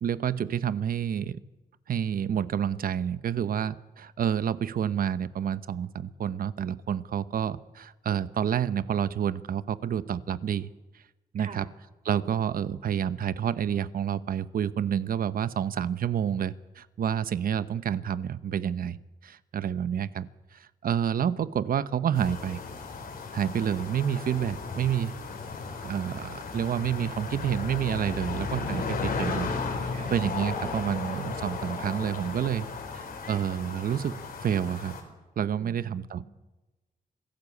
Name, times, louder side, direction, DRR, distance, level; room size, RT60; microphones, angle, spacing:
voice 1, 0.0-1.4 1.9-10.7 10.9-11.0 11.3-11.7 12.0-22.6 23.3-25.2 25.8-29.5 29.8-32.7 32.9-35.0 35.4-36.2, right 9 dB, 70° right, 15 dB, 1.0 m, -29 dB
sound 1, 22.1-35.0, left 4 dB, 75° left, 4.9 m, -35 dB
voice 2, 35.6-36.2, right 4 dB, 50° right, 7 dB, 4.1 m, -45 dB
26.0 x 17.0 x 8.5 m, 1.1 s
wide cardioid pair, 160°, 15 cm